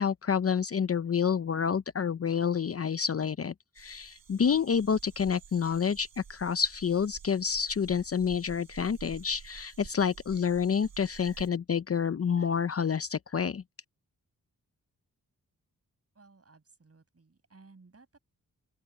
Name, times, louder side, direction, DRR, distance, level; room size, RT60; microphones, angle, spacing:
voice 1, 0.0-13.6, left 7 dB, 45° left, 0.6 m, -28 dB
sound 1, 3.8-11.5, right 7 dB, 80° right, 4.3 m, -51 dB
voice 2, 16.1-18.2, right 3 dB, 45° right, 7.4 m, -58 dB
open air
cardioid pair, 70°, 34 cm